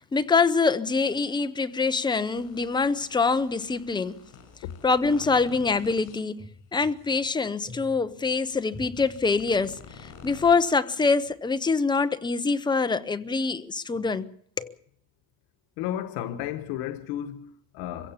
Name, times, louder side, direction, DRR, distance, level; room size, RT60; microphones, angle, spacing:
voice 1, 0.0-4.2 4.8-6.4 6.7-14.3 14.6-14.7, left 4 dB, 10° left, 0.8 m, -25 dB
sound 1, 2.3-6.2 6.8-7.0 7.4-7.5 8.8-10.5, left 6 dB, 60° left, 6.0 m, -48 dB
voice 2, 15.8-18.1, left 11 dB, 90° left, 1.3 m, -33 dB
25.5 x 16.5 x 7.2 m
cardioid pair, 170°, 36 cm